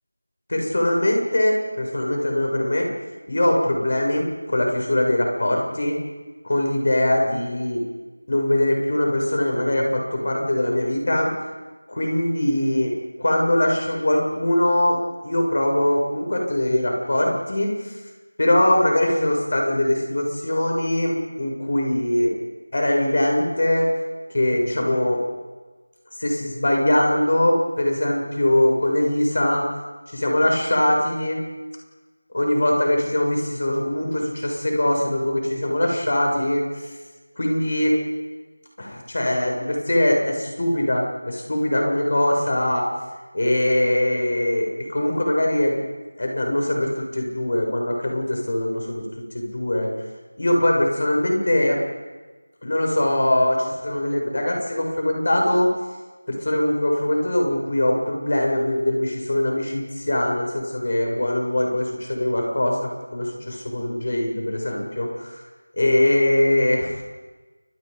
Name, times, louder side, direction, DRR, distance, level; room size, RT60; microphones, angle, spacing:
voice 1, 0.5-2.9 3.3-6.0 6.4-7.8 8.3-11.3 11.9-12.9 13.2-15.0 15.2-18.0 18.4-22.3 22.7-23.9 24.3-25.2 26.2-29.6 30.1-31.4 32.3-36.9 37.4-38.0 38.8-42.9 43.3-45.8 46.2-49.0 49.3-49.9 50.4-51.8 52.6-55.7 56.3-65.4 65.7-67.0, left 1 dB, 40° left, 0 dB, 7.1 m, -22 dB
29.5 x 24.0 x 5.5 m, 1.3 s
figure-of-eight pair, 175°, 0 cm